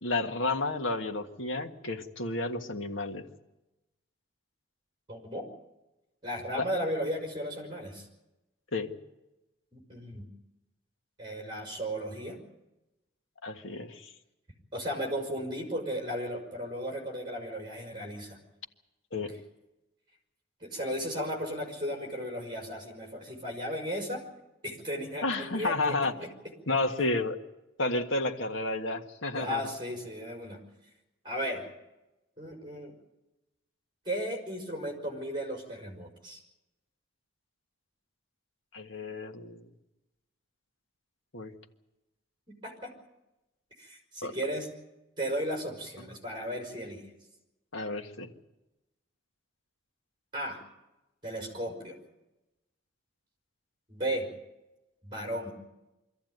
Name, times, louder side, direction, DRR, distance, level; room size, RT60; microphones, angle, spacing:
voice 1, 0.0-3.3 6.6-6.7 8.7-9.0 13.4-14.1 19.1-19.3 25.2-26.4 26.7-27.4 27.8-29.6 38.7-39.6 41.3-41.5 44.2-44.3 47.7-48.3, left 2 dB, 85° left, 4 dB, 1.8 m, -31 dB
voice 2, 5.1-5.5 6.2-8.1 9.7-10.3 11.2-12.4 14.7-18.4 19.1-19.3 20.6-24.2 24.6-26.3 29.3-30.6 31.2-31.7 32.4-32.9 34.1-36.4 42.5-42.9 43.8-44.7 45.2-47.1 50.3-50.6 51.2-52.0 53.9-54.3 55.0-55.5, equal, 25° right, 1 dB, 5.2 m, -35 dB
24.5 x 14.5 x 9.4 m, 0.99 s
head